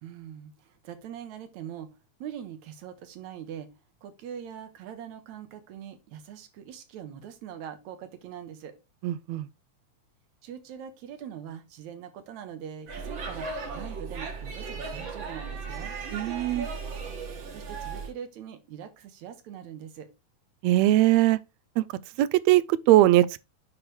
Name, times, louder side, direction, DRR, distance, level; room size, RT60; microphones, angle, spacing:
voice 1, 0.0-3.7 4.0-8.7 10.4-13.5 13.7-15.9 17.5-20.1, right 9 dB, 70° right, 2.3 m, -42 dB
voice 2, 9.0-9.5 16.1-16.7 20.6-21.4 21.8-21.9 22.2-23.4, right 15 dB, 85° right, 1.5 m, -21 dB
Speech / Shout / Subway metro underground, 12.9-18.1, right 4 dB, 50° right, 1.8 m, -36 dB
9.8 x 3.3 x 4.6 m
omnidirectional pair, 3.6 m